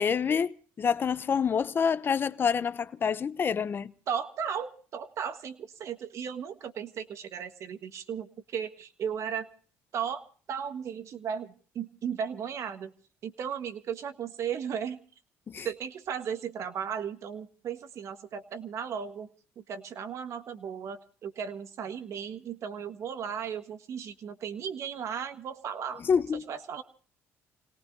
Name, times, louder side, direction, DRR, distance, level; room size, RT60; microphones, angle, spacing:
voice 1, 0.0-3.9 15.5-15.7 26.0-26.4, left 6 dB, 40° left, 0.7 m, -27 dB
voice 2, 4.1-9.5 9.9-12.9 13.2-15.0 15.6-19.3 19.5-26.0 26.5-26.8, right 7 dB, 60° right, 1.6 m, -36 dB
29.0 x 18.0 x 2.7 m
cardioid pair, 90°, 6 cm